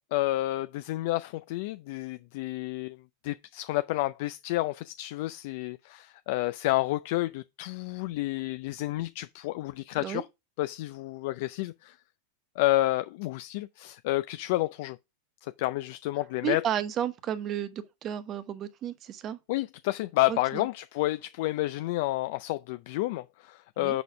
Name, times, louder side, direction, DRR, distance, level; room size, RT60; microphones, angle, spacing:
voice 1, 0.1-3.0 3.2-10.3 10.6-12.0 12.6-15.0 15.4-16.6 19.5-24.0, left 17 dB, 60° left, 0.4 m, -30 dB
voice 2, 16.4-19.4 20.3-20.7 23.8-24.0, right 10 dB, 35° right, 1.0 m, -33 dB
6.8 x 4.1 x 4.8 m
hypercardioid pair, 110°, 0 cm